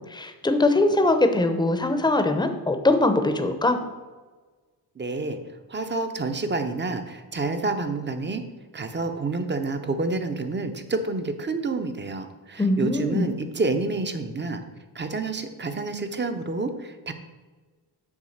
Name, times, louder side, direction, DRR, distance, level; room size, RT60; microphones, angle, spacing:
voice 1, 0.0-3.8 12.6-13.3, left 2 dB, 10° left, 7 dB, 0.8 m, -22 dB
voice 2, 5.0-5.4 5.7-8.4 8.7-14.6 14.9-17.1, right 3 dB, 25° right, 8 dB, 0.8 m, -28 dB
7.3 x 3.8 x 6.5 m, 1.3 s
cardioid pair, 85°, 41 cm